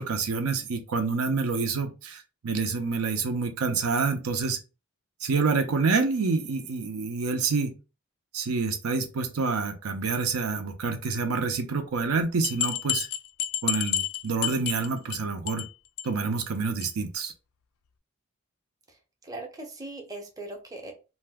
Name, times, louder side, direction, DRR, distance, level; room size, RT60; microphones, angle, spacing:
voice 1, 0.0-4.6 5.2-7.8 8.3-13.1 13.6-15.7 16.0-17.3, right 4 dB, 85° right, 0.6 m, -27 dB
sound 1, 12.0-12.1 12.4-15.2 15.5-15.7 16.0-16.1 16.4-16.5 16.8-16.9, left 10 dB, 75° left, 0.3 m, -29 dB
voice 2, 19.2-20.9, right 2 dB, 15° right, 0.6 m, -39 dB
2.6 x 2.2 x 3.4 m
head